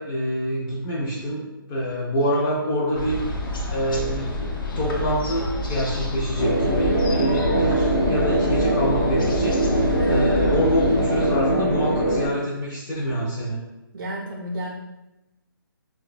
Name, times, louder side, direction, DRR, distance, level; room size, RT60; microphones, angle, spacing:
voice 1, 0.0-3.3 3.7-4.5 4.8-13.6, equal, 20° left, -8 dB, 0.3 m, -26 dB
sound 1, 2.9-11.3, left 2 dB, 65° left, 0.7 m, -29 dB
sound 2, 6.4-12.3, right 1 dB, 50° left, 1.0 m, -22 dB
voice 2, 13.9-14.7, equal, 70° right, -1 dB, 0.4 m, -31 dB
3.0 x 2.1 x 2.4 m, 0.98 s
hypercardioid pair, 155°, 12 cm